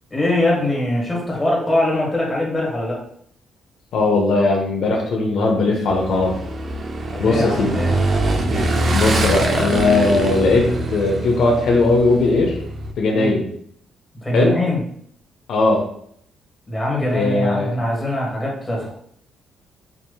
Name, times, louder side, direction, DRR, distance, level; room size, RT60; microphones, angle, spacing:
voice 1, 0.1-3.0 7.1-8.0 13.1-13.4 14.2-14.8 16.7-18.9, left 1 dB, 15° left, -3 dB, 1.6 m, -22 dB
voice 2, 3.9-6.4 7.2-7.8 8.9-12.6 13.0-13.4 14.3-14.6 15.5-15.8 17.1-17.7, left 3 dB, 75° left, 0 dB, 0.7 m, -18 dB
Motorcycle / Engine, 5.9-12.9, right 2 dB, 50° right, 0.6 m, -23 dB
5.1 x 2.7 x 2.3 m, 0.65 s
cardioid pair, 90°, 0 cm